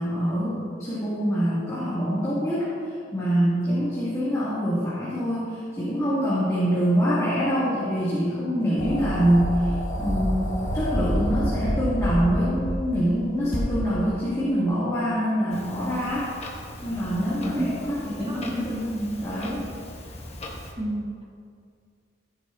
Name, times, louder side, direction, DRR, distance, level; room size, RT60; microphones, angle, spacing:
voice 1, 0.0-16.3 16.8-19.7, equal, 15° left, -11 dB, 2.5 m, -25 dB
sound 1, 8.8-12.9 13.5-13.6, equal, 85° left, 2.5 m, -27 dB
Clock, 15.5-20.7, left 1 dB, 35° left, 1.3 m, -40 dB
voice 2, 18.2-18.6 20.8-21.3, right 1 dB, 30° right, -5 dB, 1.8 m, -30 dB
15.0 x 9.4 x 2.8 m, 2.3 s
head